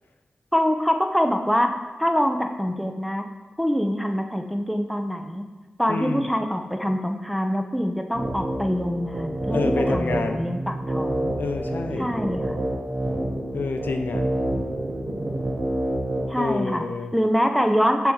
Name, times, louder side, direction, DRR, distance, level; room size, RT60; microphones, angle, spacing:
voice 1, 0.5-1.7 2.0-3.3 3.6-5.5 5.8-11.3 12.0-12.6 16.3-16.9 17.1-18.1, equal, ahead, 4 dB, 0.7 m, -24 dB
voice 2, 5.9-6.3 9.5-10.4 11.4-12.1 13.5-14.3 16.4-17.1, left 4 dB, 75° left, 6 dB, 0.5 m, -28 dB
sound 1, 8.1-16.3, right 1 dB, 50° right, 1.3 m, -28 dB
6.7 x 3.6 x 6.3 m, 1.3 s
cardioid pair, 50°, 3 cm